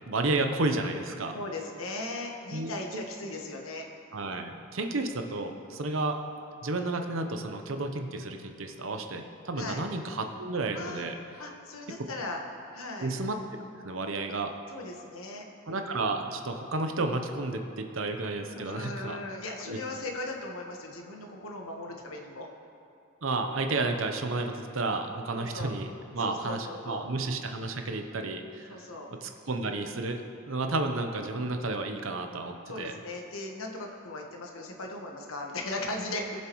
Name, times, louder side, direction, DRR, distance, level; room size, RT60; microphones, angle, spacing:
voice 1, 0.1-1.4 2.5-3.0 4.1-6.2 6.6-11.1 13.0-13.4 13.8-14.5 15.7-19.2 19.6-19.8 23.2-25.9 26.1-28.9 29.2-32.9, right 2 dB, 70° right, 5 dB, 0.8 m, -32 dB
voice 2, 1.3-3.9 9.6-9.8 10.7-11.1 11.4-12.4 12.7-13.1 14.7-15.4 18.5-22.5 25.3-25.7 26.2-27.0 28.7-29.1 32.7-36.4, left 2 dB, 80° left, 1 dB, 1.3 m, -38 dB
19.0 x 7.4 x 3.1 m, 2.6 s
head